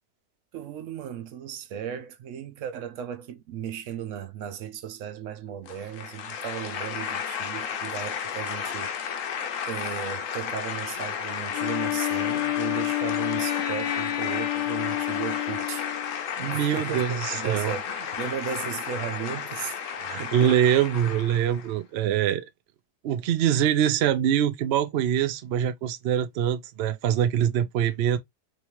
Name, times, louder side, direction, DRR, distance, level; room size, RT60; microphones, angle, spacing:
voice 1, 0.5-9.1 9.7-15.9 16.4-20.6, right 9 dB, 65° right, 0.8 m, -36 dB
sound 1, 5.7-21.7, left 7 dB, 65° left, 0.9 m, -33 dB
Wind instrument woodwind instrument, 11.5-16.2, left 16 dB, 85° left, 1.2 m, -29 dB
voice 2, 16.4-17.7 20.0-22.4 23.0-28.2, right 10 dB, 85° right, 0.5 m, -24 dB
3.1 x 3.1 x 2.9 m
omnidirectional pair, 1.7 m